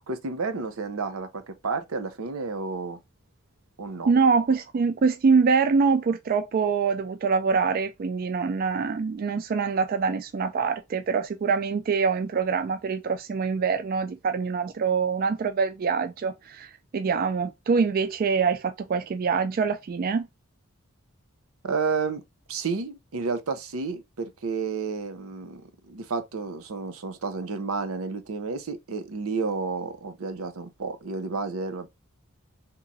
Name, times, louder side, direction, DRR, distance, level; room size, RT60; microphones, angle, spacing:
voice 1, 0.1-3.0 3.8-4.1 21.6-22.2 22.5-31.9, right 4 dB, 85° right, 0.7 m, -31 dB
voice 2, 4.1-20.3, right 5 dB, 45° right, 0.3 m, -24 dB
3.7 x 2.9 x 2.6 m
head